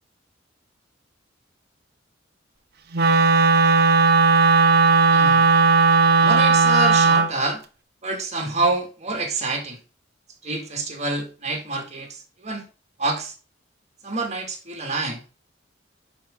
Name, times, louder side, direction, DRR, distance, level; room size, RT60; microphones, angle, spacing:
Wind instrument woodwind instrument, 2.9-7.3, right 4 dB, 55° right, 0.9 m, -16 dB
voice 1, 5.1-5.5 6.2-7.6 8.0-9.8 10.4-12.7 13.0-13.3 14.0-15.2, right 2 dB, 35° right, 2.1 m, -27 dB
10.5 x 5.3 x 3.7 m
head